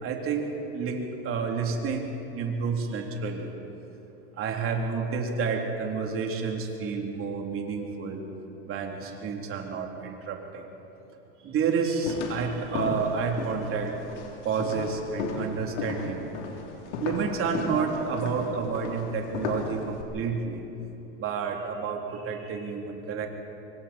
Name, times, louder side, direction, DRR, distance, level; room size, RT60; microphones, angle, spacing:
voice 1, 0.0-3.5 4.4-8.2 8.6-10.7 11.4-14.0 14.4-16.3 17.0-20.6 21.2-23.3, right 5 dB, 40° right, 1 dB, 3.4 m, -30 dB
sound 1, 12.0-20.0, left 4 dB, 85° left, 3.4 m, -35 dB
26.5 x 24.0 x 4.4 m, 3.0 s
supercardioid pair, 120°, 34 cm